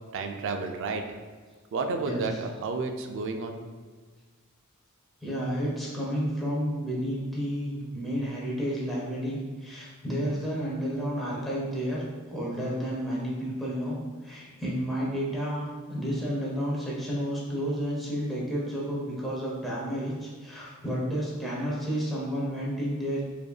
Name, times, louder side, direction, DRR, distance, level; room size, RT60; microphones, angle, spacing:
voice 1, 0.1-1.0 1.7-3.6, right 4 dB, 60° right, 5 dB, 0.4 m, -31 dB
voice 2, 5.2-23.2, equal, ahead, -6 dB, 0.7 m, -31 dB
4.8 x 2.6 x 2.3 m, 1.5 s
head